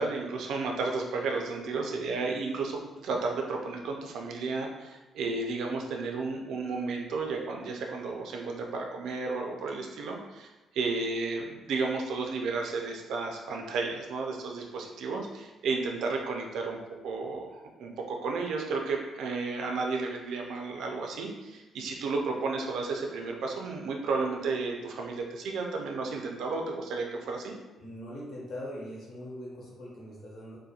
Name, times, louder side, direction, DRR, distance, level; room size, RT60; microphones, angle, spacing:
voice 1, 0.0-16.8 17.0-27.5, right 3 dB, 75° right, 1 dB, 0.4 m, -33 dB
voice 2, 27.8-30.6, equal, 55° left, -5 dB, 0.8 m, -41 dB
2.3 x 2.1 x 2.7 m, 1.1 s
cardioid pair, 145°, 0 cm